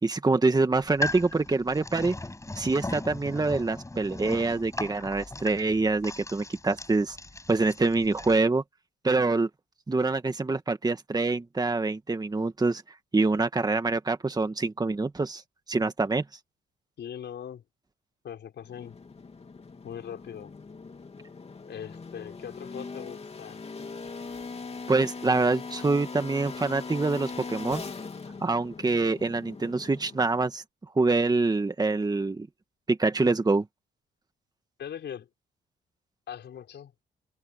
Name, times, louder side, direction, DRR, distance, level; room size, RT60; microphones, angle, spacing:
voice 1, 0.0-2.1 2.6-7.2 7.5-8.6 9.0-9.5 9.9-12.8 13.1-15.4 15.7-16.2 24.9-27.8 28.4-30.6 30.9-32.5 32.9-33.6, right 3 dB, 20° right, 1.8 m, -25 dB
sound 1, 0.8-8.4, left 2 dB, 15° left, 7.0 m, -38 dB
voice 2, 17.0-17.6 18.2-19.0 19.8-20.5 21.6-23.6 34.8-35.3 36.3-36.9, left 9 dB, 60° left, 5.0 m, -40 dB
sound 2, 18.6-30.5, left 4 dB, 30° left, 2.9 m, -41 dB
open air
cardioid pair, 90°, 20 cm